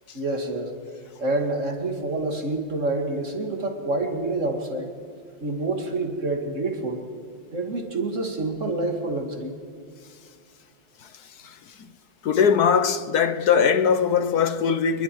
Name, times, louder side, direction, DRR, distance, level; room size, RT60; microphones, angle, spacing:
voice 1, 0.1-0.7 1.2-4.9 5.4-7.0 7.5-9.6, right 2 dB, 40° right, 2.6 m, -27 dB
voice 2, 11.0-11.9 12.2-15.0, left 7 dB, 60° left, 1.2 m, -22 dB
27.0 x 21.5 x 4.7 m
omnidirectional pair, 2.1 m